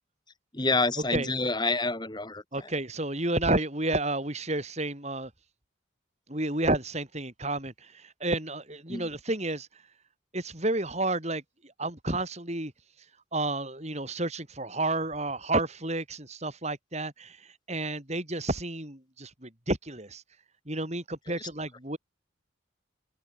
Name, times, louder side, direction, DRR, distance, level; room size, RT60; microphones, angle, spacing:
voice 1, 0.5-2.4 8.9-9.1, left 3 dB, 20° left, 2.6 m, -27 dB
voice 2, 2.5-5.3 6.3-9.7 10.3-11.4 11.8-12.7 13.3-17.4 17.7-20.2 20.7-22.0, right 2 dB, 35° right, 4.7 m, -31 dB
open air
head